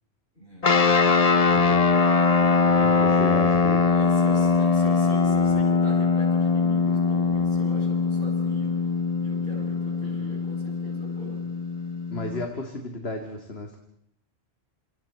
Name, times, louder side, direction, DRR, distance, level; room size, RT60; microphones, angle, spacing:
voice 1, 0.3-0.7 1.0-1.6 1.9-2.2 3.2-3.5 3.8-8.7 9.2-11.4, left 1 dB, 55° left, -2 dB, 7.9 m, -42 dB
sound 1, 0.6-12.4, left 4 dB, 35° left, 1.0 m, -22 dB
voice 2, 1.5-1.8 2.8-3.9 12.1-13.8, left 2 dB, 70° left, 3 dB, 2.4 m, -33 dB
28.5 x 28.0 x 4.3 m, 0.71 s
omnidirectional pair, 1.1 m